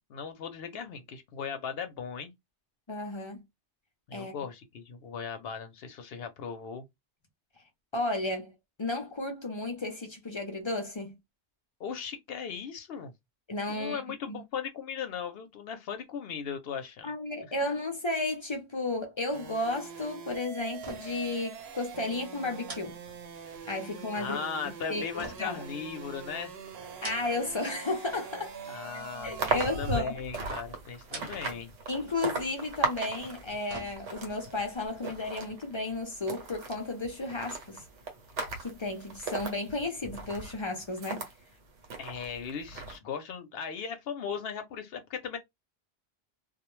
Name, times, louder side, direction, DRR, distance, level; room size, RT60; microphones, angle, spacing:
voice 1, 0.1-2.3 4.1-6.8 11.8-13.1 13.7-17.1 24.2-26.5 28.7-31.7 42.0-45.4, left 6 dB, 65° left, 0.7 m, -38 dB
voice 2, 2.9-3.4 4.1-4.3 7.9-8.5 8.8-11.2 13.5-14.0 14.3-14.4 17.0-23.0 23.7-24.4 24.9-25.6 27.0-28.6 28.9-30.2 31.9-37.8 38.6-41.2, left 2 dB, 45° left, 0.4 m, -33 dB
sound 1, 19.3-30.0, right 6 dB, 65° right, 0.8 m, -44 dB
sound 2, 20.7-21.3 21.6-21.7 22.6-23.7 25.2-26.3 26.8-27.6 27.9-28.5 29.6-30.1 30.9-31.7 32.0-32.1 33.2-34.4 34.8-34.9, right 3 dB, 40° right, 0.6 m, -46 dB
sound 3, 29.2-41.3 41.8-43.0, right 3 dB, 90° right, 1.1 m, -37 dB
2.2 x 2.1 x 3.0 m
omnidirectional pair, 1.2 m